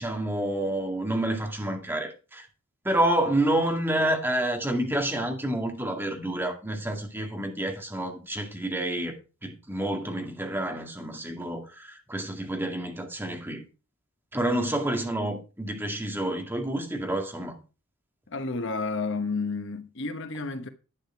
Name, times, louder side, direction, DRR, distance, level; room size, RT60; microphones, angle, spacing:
voice 1, 0.0-2.5 2.8-9.1 9.4-13.7 14.3-17.6, right 1 dB, 10° right, 2.1 m, -29 dB
voice 2, 18.3-20.7, left 3 dB, 55° left, 1.1 m, -31 dB
11.5 x 8.8 x 4.5 m
head